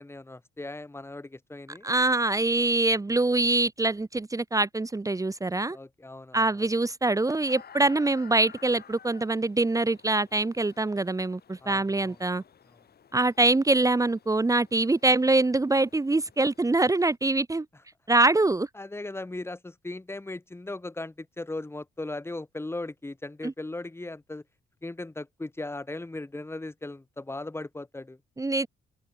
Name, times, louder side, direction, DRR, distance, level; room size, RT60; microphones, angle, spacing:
voice 1, 0.0-1.9 5.7-6.7 11.6-12.2 18.8-24.4 24.8-28.2, left 2 dB, 10° left, 2.1 m, -38 dB
voice 2, 1.8-5.8 6.3-12.4 13.1-17.6 18.1-18.7 23.4-23.5 28.4-28.7, right 2 dB, 15° right, 1.2 m, -24 dB
sound 1, 7.3-17.2, left 8 dB, 55° left, 4.9 m, -54 dB
open air
cardioid pair, 90°, 20 cm